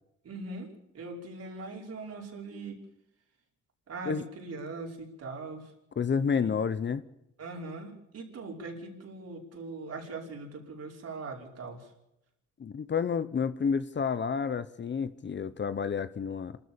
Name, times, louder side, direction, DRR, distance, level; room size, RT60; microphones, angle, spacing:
voice 1, 0.2-0.7 0.9-2.8 3.9-5.7 7.4-11.9, right 3 dB, 55° right, 5.2 m, -41 dB
voice 2, 6.0-7.0 12.6-16.6, left 6 dB, 35° left, 1.0 m, -30 dB
27.5 x 13.5 x 7.1 m
cardioid pair, 90°, 30 cm